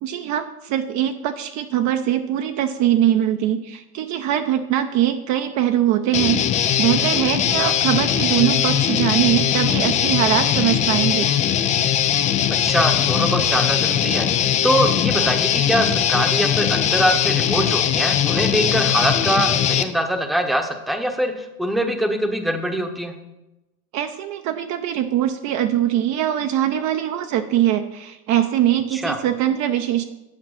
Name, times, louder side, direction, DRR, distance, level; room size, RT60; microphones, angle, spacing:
voice 1, 0.0-11.3 23.9-30.0, right 11 dB, 40° right, 7 dB, 0.6 m, -22 dB
Guitar, 6.1-19.8, left 9 dB, 20° left, 0.3 m, -20 dB
voice 2, 12.6-14.3 14.6-23.1 28.9-29.2, right 1 dB, ahead, 5 dB, 0.9 m, -23 dB
8.9 x 5.8 x 5.7 m, 0.96 s
hypercardioid pair, 100°, 43 cm